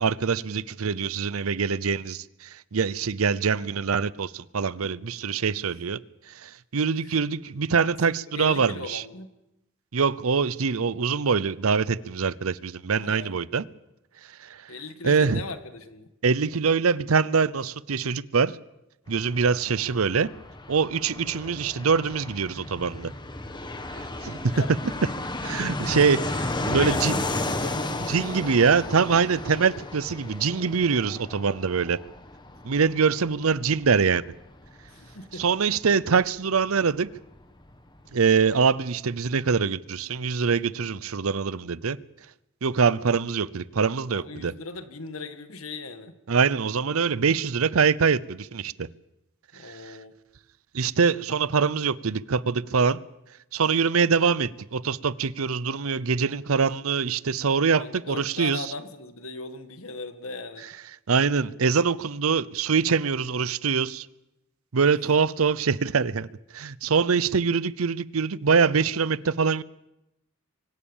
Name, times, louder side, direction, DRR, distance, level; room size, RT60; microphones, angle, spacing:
voice 1, 0.0-2.2 2.7-6.0 6.4-9.0 9.9-13.6 15.0-15.4 16.2-18.5 19.1-20.3 20.7-23.1 24.2-24.5 25.4-27.1 28.1-32.0 32.6-34.2 35.4-37.1 38.1-42.0 42.6-44.5 46.3-48.9 49.7-49.9 50.7-53.0 53.5-58.6 61.1-64.1 64.7-66.3 66.5-69.6, right 5 dB, 85° right, 0.7 m, -24 dB
voice 2, 8.3-9.3 13.0-13.3 14.7-16.1 24.5-24.7 25.8-26.0 26.6-28.0 34.9-35.5 44.1-46.2 49.5-50.1 57.8-60.7, left 3 dB, 75° left, 1.9 m, -38 dB
Fixed-wing aircraft airplane, 19.1-37.5 37.7-37.8 38.0-38.7, left 2 dB, 20° left, 1.6 m, -34 dB
24.5 x 17.0 x 7.3 m
head